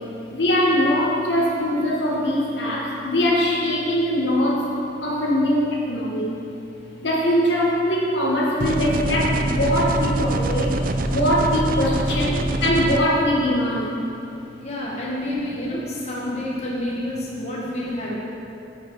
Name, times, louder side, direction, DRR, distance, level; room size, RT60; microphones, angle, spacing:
voice 1, 0.3-4.7 5.0-6.4 7.0-10.7 11.1-13.9, equal, 75° left, -3 dB, 1.4 m, -22 dB
sound 1, 8.6-13.0, right 2 dB, 50° right, 0.4 m, -24 dB
voice 2, 14.6-18.1, left 1 dB, 35° left, -5 dB, 1.3 m, -28 dB
9.7 x 5.9 x 4.6 m, 2.8 s
head